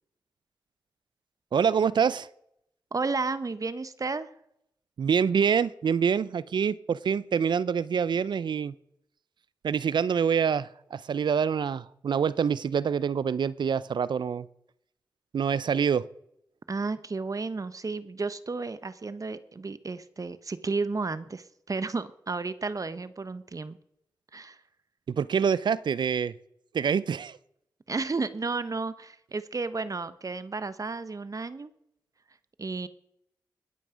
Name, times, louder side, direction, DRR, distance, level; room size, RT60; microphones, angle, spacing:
voice 1, 1.5-2.3 5.0-8.7 9.6-14.5 15.3-16.0 25.1-26.3 26.7-27.4, right 7 dB, 75° right, 19 dB, 0.6 m, -26 dB
voice 2, 2.9-4.3 16.7-23.8 24.3-24.6 27.9-31.7 32.6-32.9, right 3 dB, 45° right, 14 dB, 1.2 m, -32 dB
20.5 x 8.5 x 5.1 m, 0.75 s
cardioid pair, 45°, 8 cm